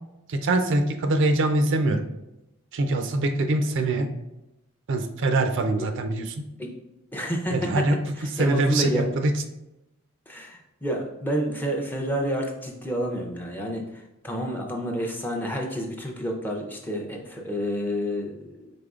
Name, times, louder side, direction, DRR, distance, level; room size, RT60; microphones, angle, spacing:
voice 1, 0.3-2.1 2.7-4.1 4.9-6.4 7.5-9.4, right 2 dB, 55° right, 7 dB, 0.4 m, -23 dB
voice 2, 7.1-7.9 8.4-9.1 10.3-13.9 14.2-18.7, equal, 10° left, 1 dB, 0.5 m, -29 dB
5.0 x 4.0 x 2.4 m, 0.92 s
head